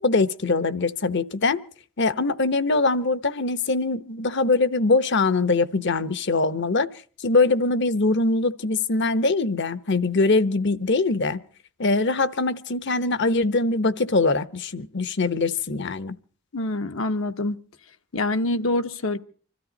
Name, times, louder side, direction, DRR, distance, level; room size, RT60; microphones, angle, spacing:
voice 1, 0.0-1.6 2.0-6.9 7.2-11.4 11.8-16.1, left 3 dB, 60° left, 0.9 m, -22 dB
voice 2, 16.5-17.6 18.1-19.2, left 2 dB, 80° left, 1.2 m, -25 dB
25.5 x 13.5 x 4.0 m
head